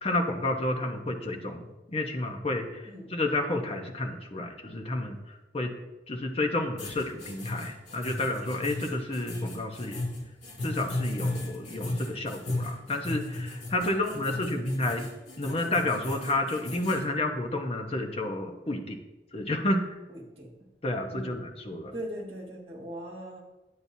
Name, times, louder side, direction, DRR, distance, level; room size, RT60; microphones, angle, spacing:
voice 1, 0.0-5.7 6.1-10.0 10.6-15.1 15.4-19.0 19.3-19.9 20.8-21.9, left 2 dB, 35° left, 4 dB, 0.9 m, -30 dB
sound 1, 6.8-17.0, left 2 dB, 70° left, 2.7 m, -35 dB
voice 2, 13.7-14.5 20.1-20.5 21.1-21.4 21.9-23.4, equal, 35° right, -1 dB, 1.6 m, -41 dB
9.7 x 8.8 x 2.7 m, 1.0 s
head